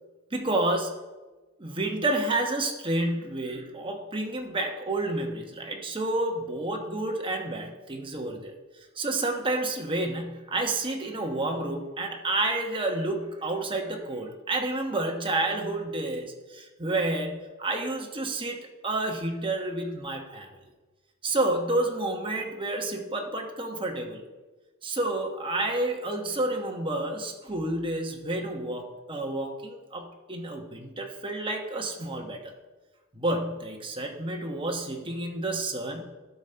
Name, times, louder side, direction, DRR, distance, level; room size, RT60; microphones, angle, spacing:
voice 1, 0.3-1.0 1.6-8.5 9.0-18.6 18.8-20.5 21.2-24.2 24.8-32.5 33.1-36.0, right 2 dB, 25° right, 2 dB, 1.1 m, -30 dB
12.0 x 5.4 x 4.4 m, 1.2 s
head